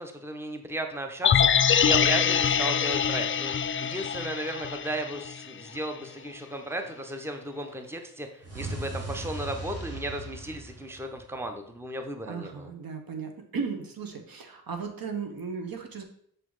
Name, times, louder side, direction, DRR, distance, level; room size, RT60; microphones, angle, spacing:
voice 1, 0.0-12.7, right 1 dB, 5° right, 6 dB, 0.9 m, -35 dB
sound 1, 1.2-5.4 5.8-5.9, left 8 dB, 35° left, 0.4 m, -24 dB
sound 2, 8.4-11.6, right 2 dB, 40° right, 1.7 m, -38 dB
voice 2, 12.2-16.0, right 5 dB, 65° right, 5 dB, 1.2 m, -36 dB
6.5 x 4.1 x 4.8 m, 0.65 s
cardioid pair, 65°, 38 cm